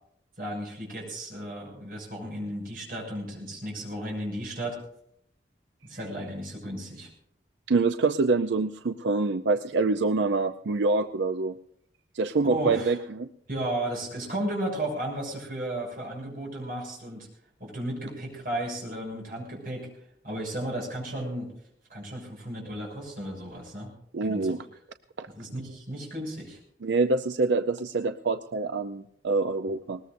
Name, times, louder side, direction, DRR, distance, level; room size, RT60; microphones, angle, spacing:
voice 1, 0.4-4.8 5.8-7.1 12.4-13.0 13.5-17.3 17.6-19.9 20.2-21.5 21.9-23.9 24.2-24.5 25.4-26.6, right 1 dB, 50° right, -1 dB, 6.5 m, -34 dB
voice 2, 7.7-11.5 12.1-13.3 24.1-24.6 25.2-25.3 26.8-30.0, right 3 dB, 90° right, 9 dB, 0.6 m, -26 dB
20.5 x 19.5 x 2.6 m, 0.71 s
head